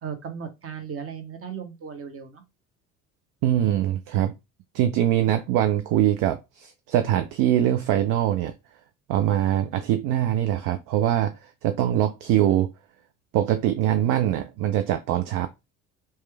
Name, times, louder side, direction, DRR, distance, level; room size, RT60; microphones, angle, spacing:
voice 1, 0.0-2.4, right 7 dB, 30° right, 0.9 m, -36 dB
voice 2, 3.4-4.3 4.7-8.5 9.1-12.7 13.3-15.5, right 12 dB, 50° right, 0.4 m, -23 dB
3.0 x 2.2 x 3.3 m
figure-of-eight pair, 55°, 43 cm